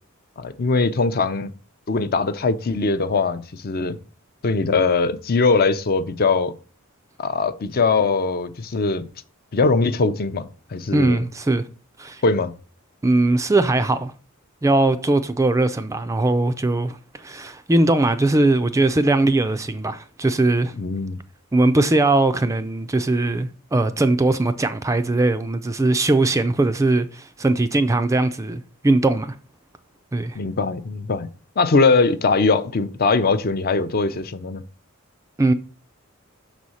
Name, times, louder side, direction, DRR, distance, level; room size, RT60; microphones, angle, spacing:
voice 1, 0.4-1.5 1.9-4.0 4.4-6.5 7.2-9.1 9.5-11.2 12.2-12.5 20.8-21.2 30.3-31.3 31.6-34.6, left 4 dB, 45° left, 0.5 m, -21 dB
voice 2, 10.9-11.7 12.0-12.2 13.0-14.1 14.6-20.7 21.5-29.4 30.1-30.4 35.4-35.5, right 2 dB, 15° right, 0.3 m, -20 dB
6.2 x 4.2 x 6.3 m
head